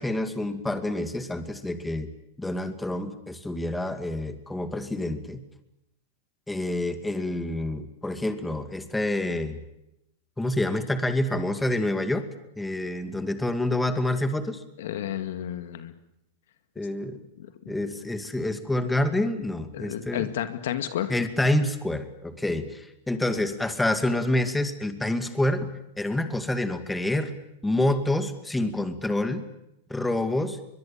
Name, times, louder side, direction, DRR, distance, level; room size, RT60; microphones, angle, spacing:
voice 1, 0.0-2.1 2.4-5.4 6.5-9.6 10.4-12.2 12.6-14.6 16.8-17.2 17.7-20.3 21.1-27.3 27.6-29.4 29.9-30.6, left 1 dB, 5° left, 9 dB, 2.4 m, -27 dB
voice 2, 14.8-15.9 17.4-17.7 19.7-21.1, left 11 dB, 70° left, 11 dB, 2.1 m, -32 dB
23.5 x 22.0 x 8.8 m, 0.85 s
hypercardioid pair, 120°, 0 cm